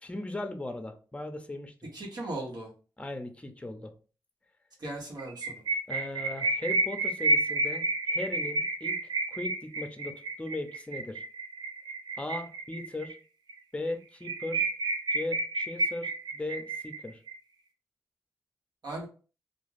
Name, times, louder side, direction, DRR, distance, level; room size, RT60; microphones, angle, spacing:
voice 1, 0.0-1.9 3.0-3.9 5.9-9.0 9.3-11.2 12.2-13.2 13.7-14.6 15.1-17.2, left 2 dB, 15° left, 5 dB, 0.7 m, -38 dB
voice 2, 1.9-2.7 4.8-5.6 18.8-19.1, right 2 dB, 70° right, -2 dB, 1.2 m, -37 dB
sound 1, 5.2-13.1 13.5-13.6 13.9-14.0 14.2-17.3, right 2 dB, 85° right, 0.6 m, -30 dB
2.4 x 2.3 x 3.2 m, 0.36 s
cardioid pair, 55°, 7 cm